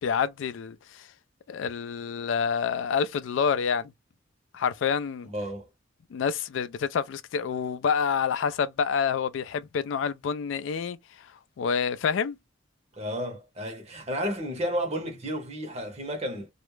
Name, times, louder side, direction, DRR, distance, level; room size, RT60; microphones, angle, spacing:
voice 1, 0.0-1.0 1.5-3.9 4.5-5.3 6.1-11.0 11.6-12.4, left 6 dB, 75° left, 0.3 m, -27 dB
voice 2, 5.2-5.7 12.9-16.5, equal, 35° right, 0.8 m, -32 dB
2.3 x 2.0 x 3.0 m
head